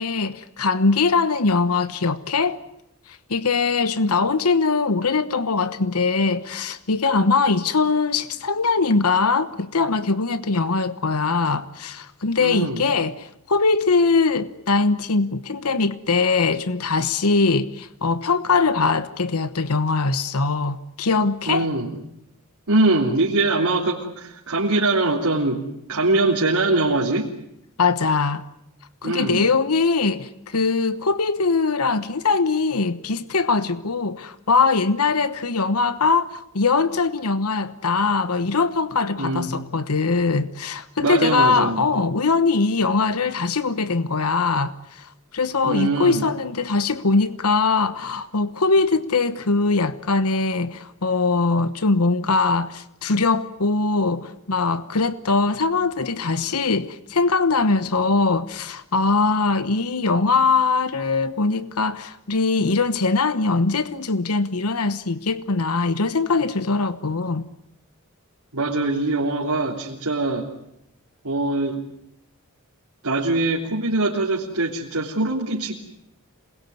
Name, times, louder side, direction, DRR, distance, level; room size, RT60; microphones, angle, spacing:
voice 1, 0.0-2.6 3.3-21.7 27.8-28.4 29.0-67.5, left 4 dB, 85° left, 1.1 m, -21 dB
voice 2, 12.4-12.8 21.5-21.9 22.7-25.6 25.9-27.3 29.0-29.5 39.2-39.5 41.0-41.9 45.6-46.3 68.5-70.5 71.2-71.8 73.0-75.7, right 2 dB, 80° right, 3.5 m, -22 dB
27.0 x 21.5 x 9.6 m
head